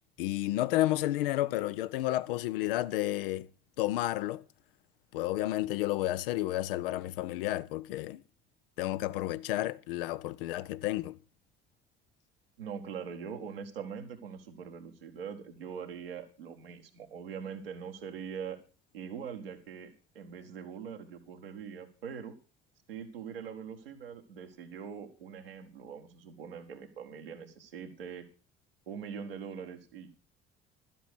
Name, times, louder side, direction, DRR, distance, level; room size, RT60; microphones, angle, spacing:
voice 1, 0.2-3.5 3.8-4.4 5.1-8.2 8.8-11.2, left 15 dB, 70° left, 0.5 m, -31 dB
voice 2, 12.6-18.6 18.9-22.3 22.9-28.3 28.9-30.1, right 7 dB, 80° right, 1.4 m, -42 dB
12.0 x 7.5 x 6.1 m
figure-of-eight pair, 50°, 29 cm